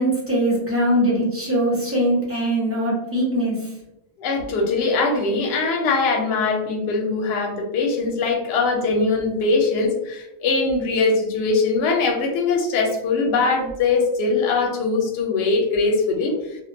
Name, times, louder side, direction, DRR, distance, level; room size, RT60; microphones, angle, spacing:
voice 1, 0.0-3.6, right 1 dB, 20° right, -6 dB, 0.4 m, -21 dB
voice 2, 4.2-16.3, left 3 dB, 65° left, 1 dB, 0.7 m, -21 dB
2.4 x 2.2 x 2.6 m, 0.89 s
omnidirectional pair, 1.4 m